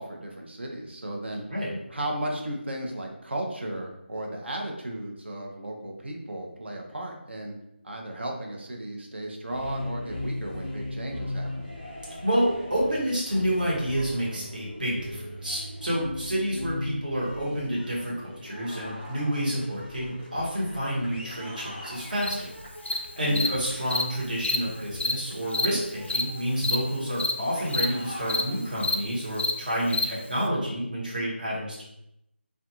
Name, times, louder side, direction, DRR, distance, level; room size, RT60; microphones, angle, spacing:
voice 1, 0.0-1.4 1.9-7.6 7.8-11.7 23.2-23.6, right 1 dB, 70° right, 0 dB, 0.7 m, -35 dB
sound 1, 9.4-29.0, left 1 dB, 15° left, 0.4 m, -39 dB
voice 2, 12.2-22.5 23.2-31.8, equal, 45° right, -6 dB, 1.0 m, -29 dB
Cricket, 22.2-22.3 22.9-23.0 23.4-23.5 23.9-24.0 24.4-24.6 25.0-25.1 25.5-25.7 26.1-26.2 26.6-26.8 27.2-27.3 27.7-27.9 28.3-28.4 28.8-29.0 29.4-29.5 29.9-30.0, left 2 dB, 80° left, 0.4 m, -26 dB
2.4 x 2.2 x 2.9 m, 0.81 s
figure-of-eight pair, 175°, 6 cm